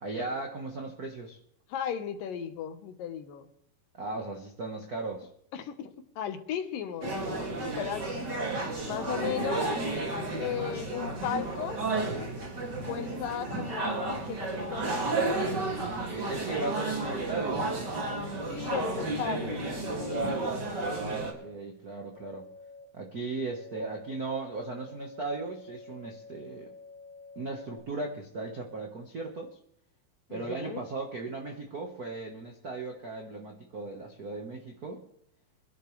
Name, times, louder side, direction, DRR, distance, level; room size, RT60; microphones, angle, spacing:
voice 1, 0.0-1.4 3.9-5.3 8.9-9.1 15.8-17.9 20.9-22.5 22.9-26.7 27.3-29.6 30.3-35.0, right 3 dB, 60° right, 2 dB, 0.9 m, -37 dB
voice 2, 1.7-3.5 5.5-8.3 8.8-9.7 10.4-11.8 12.6-15.1 18.5-20.6 30.3-30.8, left 8 dB, 80° left, 7 dB, 2.8 m, -36 dB
sound 1, 7.0-21.3, right 2 dB, 35° right, 2.6 m, -32 dB
sound 2, 8.8-15.3, left 2 dB, 20° left, 3.2 m, -49 dB
sound 3, 18.0-18.7 19.3-20.1 20.8-21.5 22.1-22.8 23.5-27.8, left 4 dB, 55° left, 2.7 m, -49 dB
26.0 x 11.0 x 3.3 m, 0.73 s
omnidirectional pair, 3.9 m